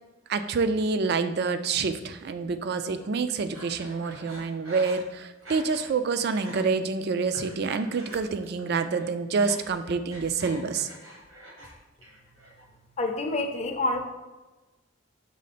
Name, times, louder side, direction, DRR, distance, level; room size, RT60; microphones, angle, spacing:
voice 1, 0.3-10.9, right 4 dB, 50° right, 11 dB, 0.4 m, -27 dB
Breathing, 3.5-5.9 6.2-6.6 7.1-8.6 8.9-11.7 12.0-12.6, right 1 dB, 75° right, 1.6 m, -46 dB
voice 2, 13.0-14.0, left 2 dB, 35° left, 4 dB, 0.5 m, -27 dB
6.3 x 3.6 x 4.1 m, 1.1 s
head